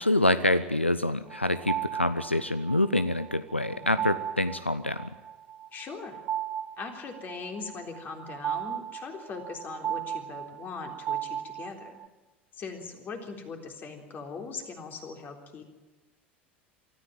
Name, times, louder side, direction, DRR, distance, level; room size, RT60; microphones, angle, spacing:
voice 1, 0.0-5.1, left 1 dB, 90° left, 14 dB, 0.6 m, -26 dB
sound 1, 1.3-12.1, right 10 dB, 35° right, 1.5 m, -36 dB
voice 2, 3.7-4.1 5.7-6.2 6.8-12.0 12.6-15.6, left 4 dB, 30° left, 3 dB, 3.7 m, -40 dB
24.0 x 14.0 x 9.1 m, 1.2 s
figure-of-eight pair, 80°, 6 cm